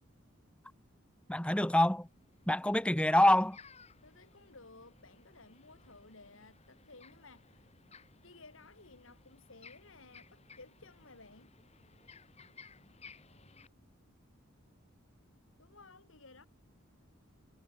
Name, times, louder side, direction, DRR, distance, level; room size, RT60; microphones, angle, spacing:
voice 1, 1.3-2.1 2.5-3.6, left 1 dB, 5° left, 1.1 m, -26 dB
sound 1, 2.1-13.7, left 5 dB, 30° left, 2.9 m, -59 dB
voice 2, 4.0-7.7 8.2-11.5 15.6-16.5, left 3 dB, 70° left, 3.0 m, -57 dB
head